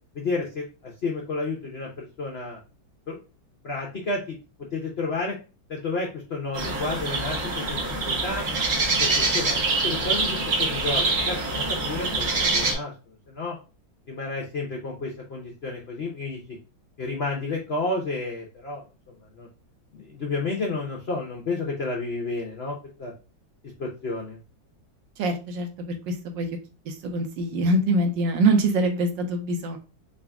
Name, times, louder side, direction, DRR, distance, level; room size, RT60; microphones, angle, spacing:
voice 1, 0.1-2.6 3.1-3.2 3.6-4.4 4.7-5.4 5.7-8.5 9.0-12.9 13.3-13.6 14.1-16.6 17.0-18.8 19.2-19.5 19.9-23.1 23.8-24.4, left 3 dB, 85° left, -1 dB, 0.5 m, -31 dB
sound 1, 6.5-12.7, right 3 dB, 45° right, 1.2 m, -25 dB
voice 2, 25.2-26.5 26.9-29.8, right 2 dB, 75° right, 5 dB, 1.4 m, -24 dB
3.9 x 2.5 x 3.4 m, 0.33 s
omnidirectional pair, 2.1 m